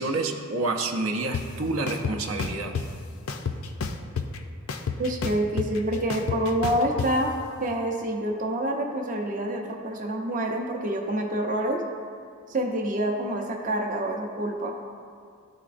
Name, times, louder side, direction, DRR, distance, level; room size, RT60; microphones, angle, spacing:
voice 1, 0.0-2.8, right 2 dB, 80° right, 3 dB, 0.6 m, -28 dB
sound 1, 1.3-1.4 1.9-2.8 3.3-4.4 4.7-7.1, left 5 dB, 85° left, 0.4 m, -29 dB
voice 2, 5.0-7.3 7.6-11.8 12.5-14.7, right 1 dB, 40° right, 1 dB, 0.5 m, -27 dB
12.0 x 4.0 x 2.5 m, 2.2 s
head